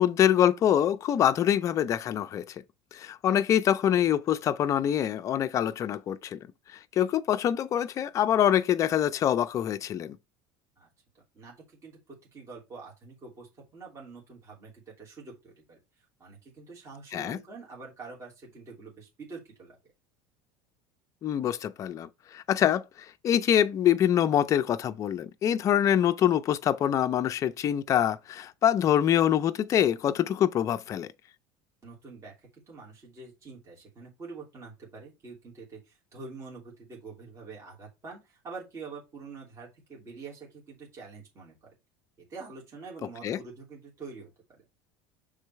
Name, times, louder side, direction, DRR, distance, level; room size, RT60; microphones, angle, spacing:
voice 1, 0.0-2.6 2.9-6.4 6.7-10.2 17.1-17.4 21.2-31.1 43.2-43.4, left 10 dB, 30° left, 0.5 m, -25 dB
voice 2, 11.3-19.8 31.8-41.7 42.3-44.3, right 4 dB, 25° right, 3.0 m, -46 dB
6.5 x 3.8 x 4.5 m
cardioid pair, 155°, 11 cm